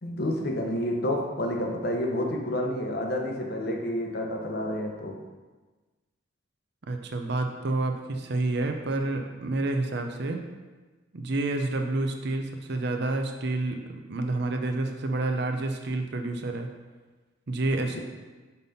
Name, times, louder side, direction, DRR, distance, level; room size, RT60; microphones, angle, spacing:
voice 1, 0.0-5.2 17.9-18.0, left 1 dB, 50° left, 2 dB, 0.8 m, -29 dB
voice 2, 6.9-10.5 11.1-16.7 17.5-18.0, right 2 dB, 55° right, 5 dB, 0.6 m, -29 dB
5.5 x 4.1 x 5.3 m, 1.3 s
head